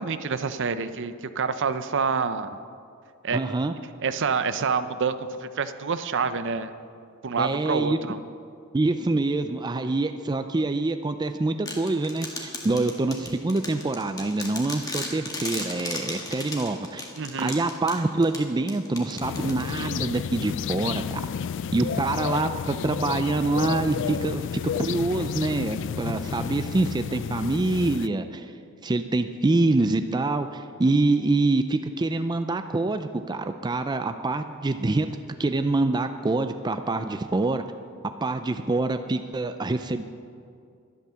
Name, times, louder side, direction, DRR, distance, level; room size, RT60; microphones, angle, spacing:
voice 1, 0.0-2.6 3.2-3.4 4.0-6.7 7.2-8.2 17.2-17.5, right 5 dB, 60° right, 12 dB, 0.6 m, -27 dB
voice 2, 3.3-3.7 7.4-8.0 8.7-17.1 17.4-21.2 21.7-28.5 28.8-35.1 35.4-37.6 38.0-40.0, right 2 dB, 20° right, 8 dB, 0.4 m, -25 dB
sound 1, 11.7-20.1, left 2 dB, 15° left, 1.7 m, -36 dB
sound 2, 19.2-28.1, left 7 dB, 55° left, 0.3 m, -31 dB
12.0 x 11.0 x 6.9 m, 2.3 s
head